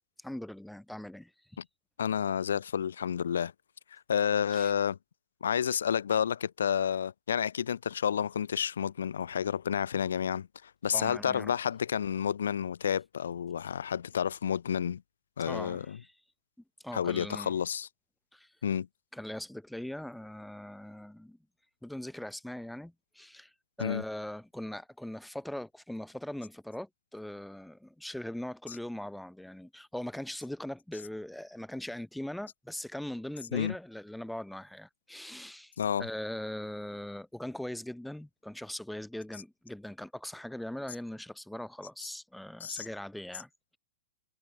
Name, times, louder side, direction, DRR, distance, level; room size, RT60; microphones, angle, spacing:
voice 1, 0.2-1.3 4.5-4.7 10.9-11.5 15.4-16.1 16.8-17.5 18.3-18.5 19.1-21.4 21.8-23.5 23.8-35.7 36.0-43.8, left 1 dB, ahead, 6.8 m, -40 dB
voice 2, 2.0-3.5 3.9-5.0 5.4-15.0 15.4-16.0 16.9-17.9 18.6-18.9 23.8-24.0 33.5-33.7 35.8-36.1 42.6-42.9, left 8 dB, 75° left, 2.2 m, -30 dB
hypercardioid pair, 105°, 0 cm